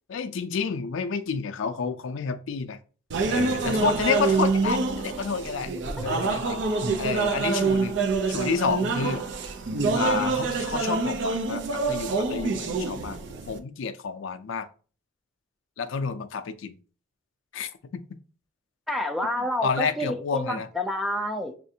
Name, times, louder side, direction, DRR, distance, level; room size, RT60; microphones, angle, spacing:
voice 1, 0.1-2.8 3.3-5.7 6.0-6.6 7.0-8.0 8.3-9.2 9.9-13.2 13.5-14.7 15.8-16.8 17.5-18.0 19.6-20.7, left 5 dB, 70° left, 0.4 m, -29 dB
sound 1, 3.1-13.6, right 4 dB, 55° right, 0.4 m, -26 dB
voice 2, 18.9-21.5, left 1 dB, ahead, 0.4 m, -29 dB
6.0 x 2.4 x 2.7 m
head